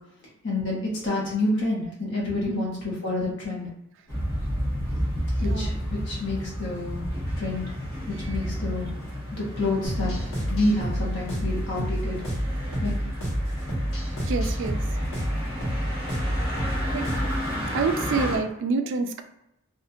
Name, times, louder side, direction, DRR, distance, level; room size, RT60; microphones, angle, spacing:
voice 1, 0.4-3.7 5.4-7.0 7.4-7.7 8.1-8.9 9.3-10.1 10.5-12.2 12.8-12.9, left 2 dB, 60° left, -4 dB, 1.0 m, -28 dB
sound 1, 4.1-18.4, equal, 15° left, 0.8 m, -31 dB
voice 2, 5.4-5.8 8.2-8.4 13.8-13.9 14.2-14.8 16.9-17.1 17.7-19.2, right 4 dB, 60° right, 7 dB, 0.3 m, -28 dB
sound 2, 9.8-17.5, equal, 85° left, 1.1 m, -29 dB
2.8 x 2.4 x 2.4 m, 0.85 s
head